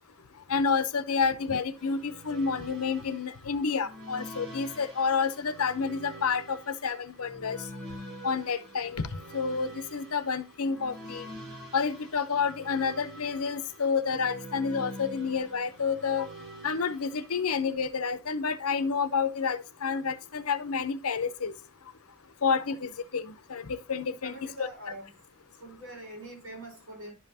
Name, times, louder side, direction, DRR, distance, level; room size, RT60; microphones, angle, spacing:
voice 1, 0.5-7.6 8.2-9.1 9.3-11.3 11.7-16.3 16.6-21.5 22.4-24.7, left 5 dB, 80° left, 0.8 m, -29 dB
sound 1, 1.8-17.4, right 1 dB, 50° right, 4.3 m, -46 dB
voice 2, 24.2-25.1 25.6-27.1, right 1 dB, 65° right, 4.9 m, -43 dB
11.0 x 5.6 x 2.8 m
head